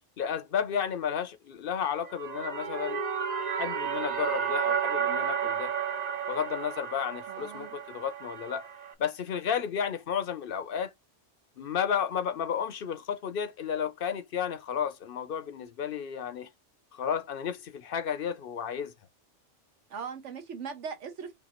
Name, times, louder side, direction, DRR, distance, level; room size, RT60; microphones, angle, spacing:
voice 1, 0.2-3.0 3.6-5.7 6.3-8.7 9.0-10.9 11.6-16.5 16.9-18.9, left 8 dB, 60° left, 0.7 m, -32 dB
sound 1, 2.0-8.9, right 7 dB, 45° right, 0.6 m, -32 dB
voice 2, 7.3-7.8 19.9-21.3, right 6 dB, 80° right, 1.3 m, -39 dB
5.2 x 2.5 x 2.9 m
omnidirectional pair, 1.2 m